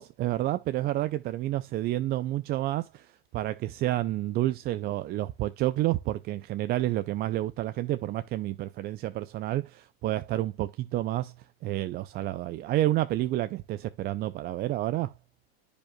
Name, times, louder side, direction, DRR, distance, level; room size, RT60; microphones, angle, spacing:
voice 1, 0.0-11.3 11.6-15.1, right 15 dB, 30° right, 0.4 m, -29 dB
12.0 x 5.1 x 2.3 m
supercardioid pair, 135°, 31 cm